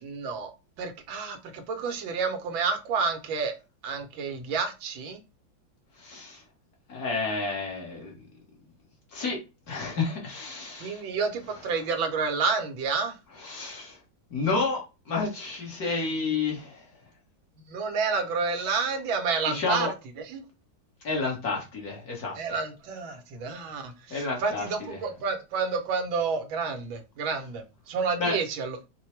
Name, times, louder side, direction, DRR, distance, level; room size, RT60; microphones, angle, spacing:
voice 1, 0.0-0.5 0.8-3.5 3.8-5.2 10.8-13.1 17.7-19.9 20.3-20.4 22.4-28.9, right 5 dB, 85° right, 1.6 m, -29 dB
voice 2, 6.0-6.4 6.9-8.2 9.1-9.4 9.7-11.1 13.4-14.0 14.3-16.9 18.6-18.8 19.5-19.9 21.0-22.4 24.1-25.0 28.2-28.4, left 4 dB, 55° left, 1.7 m, -30 dB
4.6 x 2.2 x 4.4 m
omnidirectional pair, 2.1 m